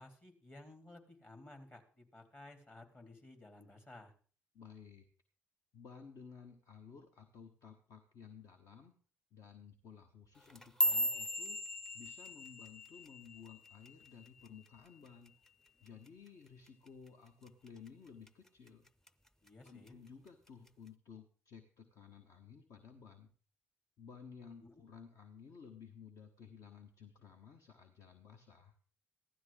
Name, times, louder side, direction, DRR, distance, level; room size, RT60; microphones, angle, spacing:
voice 1, 0.0-4.1 19.4-19.9 24.6-24.8, left 2 dB, 30° left, 4 dB, 3.4 m, -56 dB
voice 2, 4.5-5.1 5.7-8.9 9.3-15.3 15.8-18.9 19.6-23.3 24.0-28.8, left 6 dB, 55° left, 5 dB, 1.2 m, -55 dB
sound 1, 10.4-14.8 15.1-15.5 15.9-16.3 16.7-16.9 17.5-17.9 18.3-19.1 19.5-19.9 20.7-20.8, equal, 5° left, 0.7 m, -37 dB
15.5 x 12.5 x 3.7 m, 0.40 s
figure-of-eight pair, 45°, 6 cm